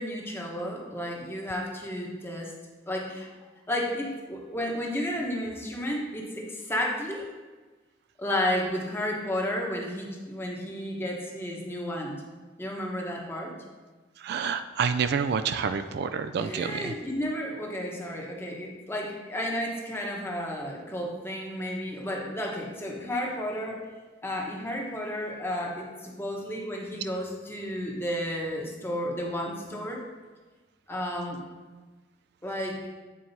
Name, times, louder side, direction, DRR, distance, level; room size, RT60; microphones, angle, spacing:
voice 1, 0.0-2.5 2.9-3.3 3.7-7.2 8.2-12.2 12.6-13.5 16.4-23.9 24.2-30.0 30.9-31.4 32.4-32.8, equal, 10° left, -1 dB, 1.0 m, -32 dB
voice 2, 14.2-16.9, right 6 dB, 60° right, 9 dB, 0.3 m, -28 dB
8.5 x 4.5 x 4.1 m, 1.3 s
head